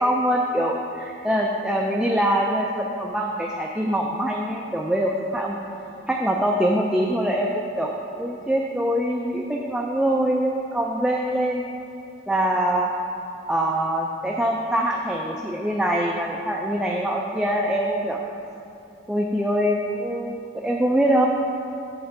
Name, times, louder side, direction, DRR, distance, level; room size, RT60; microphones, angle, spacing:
voice 1, 0.0-5.6 6.1-11.7 12.3-12.9 13.5-18.2 19.1-21.3, right 1 dB, 5° right, -1 dB, 0.3 m, -24 dB
8.0 x 4.4 x 6.3 m, 2.8 s
head